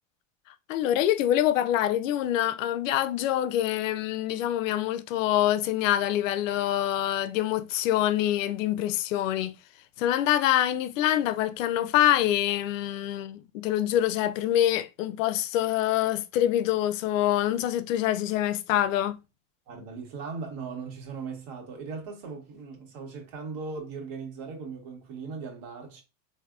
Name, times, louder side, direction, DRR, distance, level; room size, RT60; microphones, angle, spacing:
voice 1, 0.7-9.5 10.0-19.2, left 12 dB, 80° left, 0.5 m, -25 dB
voice 2, 19.7-26.0, right 4 dB, 60° right, 1.4 m, -38 dB
3.4 x 2.7 x 2.4 m
supercardioid pair, 105°, 38 cm